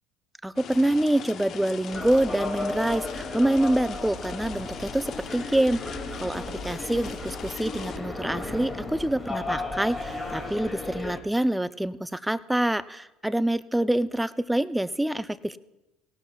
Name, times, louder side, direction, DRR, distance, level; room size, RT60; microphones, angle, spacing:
voice 1, 0.4-15.6, right 1 dB, 5° right, 15 dB, 0.5 m, -26 dB
sound 1, 0.6-8.0, left 8 dB, 50° left, 0.8 m, -41 dB
sound 2, 1.9-11.2, left 2 dB, 15° left, 2.3 m, -35 dB
Drawer open or close, 3.2-11.4, right 5 dB, 50° right, 1.5 m, -51 dB
19.0 x 17.5 x 2.3 m, 0.99 s
hypercardioid pair, 70°, 0 cm